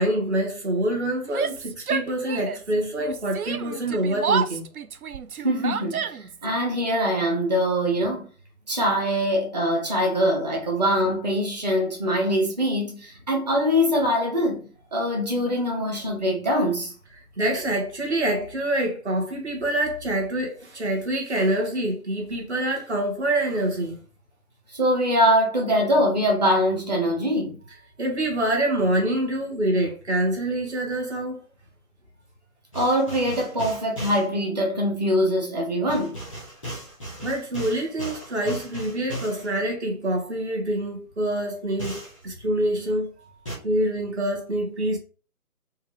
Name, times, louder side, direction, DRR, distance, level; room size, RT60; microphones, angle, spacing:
voice 1, 0.0-4.7 17.4-24.0 28.0-31.4 37.2-43.1 43.6-45.0, right 1 dB, 50° right, 1.7 m, -26 dB
Yell, 1.2-2.7 3.0-6.4, right 7 dB, 75° right, 0.5 m, -29 dB
voice 2, 5.4-6.0 6.4-8.2 8.7-16.9 24.7-27.5 32.7-36.2, equal, 30° right, 1.0 m, -23 dB
sound 1, 32.7-34.3 35.9-39.5 41.8-42.2 43.5-43.6, equal, 5° right, 0.9 m, -36 dB
5.3 x 2.5 x 3.1 m
figure-of-eight pair, 160°, 44 cm